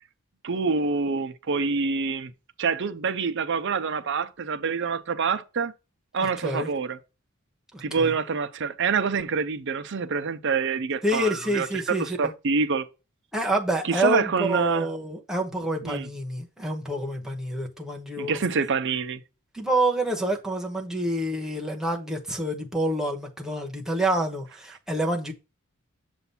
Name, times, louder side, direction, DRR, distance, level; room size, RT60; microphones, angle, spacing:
voice 1, 0.4-2.3 2.6-5.7 6.1-7.0 7.8-12.9 13.8-14.9 15.8-16.1 18.2-19.2, right 5 dB, 60° right, 0.6 m, -26 dB
voice 2, 6.2-6.7 7.7-8.1 11.0-12.2 13.3-18.4 19.5-25.3, right 1 dB, 5° right, 1.1 m, -27 dB
7.0 x 2.6 x 5.5 m
head